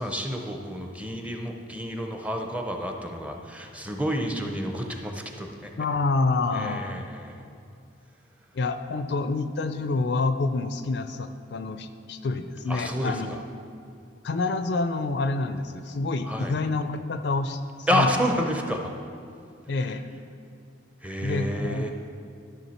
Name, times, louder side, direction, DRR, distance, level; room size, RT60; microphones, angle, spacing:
voice 1, 0.0-5.7 6.5-7.4 12.7-13.1 16.3-16.5 17.9-18.9 21.0-21.9, equal, 5° right, 3 dB, 0.6 m, -29 dB
voice 2, 5.8-7.0 8.5-13.4 14.2-18.1 19.7-20.2 21.2-21.9, left 3 dB, 55° left, 9 dB, 0.4 m, -28 dB
12.5 x 6.4 x 4.3 m, 2.6 s
head